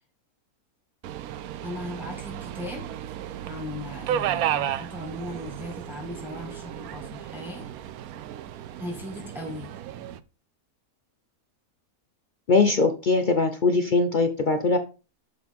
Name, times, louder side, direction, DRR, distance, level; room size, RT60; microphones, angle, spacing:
Subway metro underground, 1.0-10.2, right 11 dB, 80° right, 1.1 m, -33 dB
voice 1, 1.6-2.9 3.5-7.7 8.8-9.8, left 1 dB, ahead, 0 dB, 1.8 m, -38 dB
voice 2, 12.5-14.8, left 3 dB, 45° left, 7 dB, 0.7 m, -21 dB
6.9 x 5.9 x 3.6 m, 0.31 s
omnidirectional pair, 1.5 m